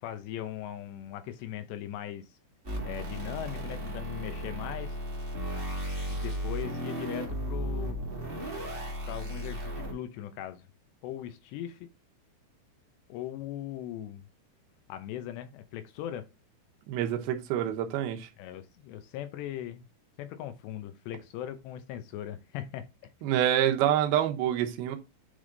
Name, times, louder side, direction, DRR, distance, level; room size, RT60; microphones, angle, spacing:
voice 1, 0.0-2.4 2.9-5.0 6.1-8.0 9.1-10.6 11.0-11.9 13.1-14.2 14.9-16.3 18.4-19.9 20.2-22.8, left 11 dB, 80° left, 2.8 m, -39 dB
sound 1, 2.6-9.9, equal, 50° right, 0.6 m, -35 dB
voice 2, 16.9-18.3 23.2-25.0, right 11 dB, 70° right, 2.5 m, -27 dB
9.7 x 3.5 x 3.8 m
omnidirectional pair, 5.3 m